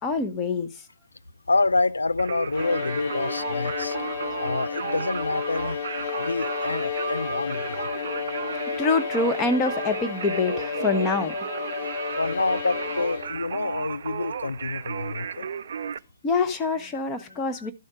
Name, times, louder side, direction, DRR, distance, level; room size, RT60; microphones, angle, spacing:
voice 1, 0.0-0.9 8.8-11.4 16.2-17.7, left 3 dB, 15° left, 0.9 m, -25 dB
voice 2, 1.5-4.0 4.4-7.9 12.2-15.5 17.6-17.7, left 3 dB, 75° left, 0.4 m, -27 dB
Singing, 2.2-16.0, right 7 dB, 50° right, 0.4 m, -34 dB
Bowed string instrument, 2.5-13.6, left 6 dB, 40° left, 2.5 m, -32 dB
12.0 x 4.5 x 4.8 m
figure-of-eight pair, 130°, 0 cm